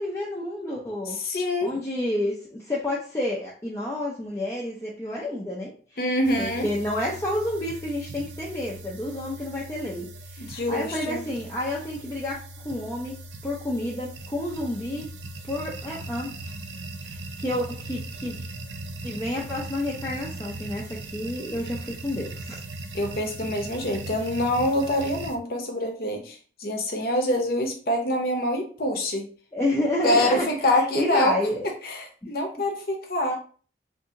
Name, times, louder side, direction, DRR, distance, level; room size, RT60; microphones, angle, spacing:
voice 1, 0.0-1.2 1.6-5.7 6.4-13.2 13.4-15.1 15.5-16.3 17.0-18.4 19.0-22.6 29.5-30.5 30.9-31.7 32.2-32.3 33.3-33.4, left 1 dB, 15° left, -4 dB, 0.5 m, -30 dB
voice 2, 1.1-1.7 6.0-6.7 10.4-11.2 22.9-29.3 30.0-31.4 31.8-33.3, left 1 dB, 55° left, 3 dB, 0.7 m, -25 dB
sound 1, 6.2-25.4, right 2 dB, 85° right, 0.4 m, -39 dB
2.7 x 2.6 x 3.7 m, 0.42 s
head